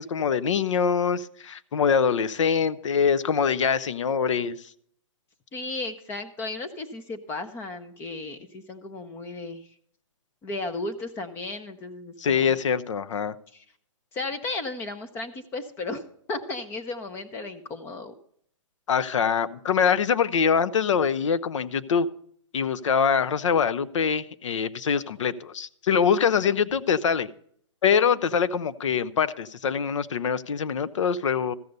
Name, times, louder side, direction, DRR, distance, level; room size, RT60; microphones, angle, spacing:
voice 1, 0.0-4.5 12.2-13.3 18.9-22.1 22.5-27.3 27.8-31.5, left 6 dB, 70° left, 15 dB, 0.6 m, -24 dB
voice 2, 5.5-9.7 10.4-12.5 13.5-13.6 14.1-18.1, left 2 dB, 15° left, 9 dB, 0.6 m, -35 dB
14.0 x 6.6 x 5.2 m, 0.64 s
hypercardioid pair, 150°, 16 cm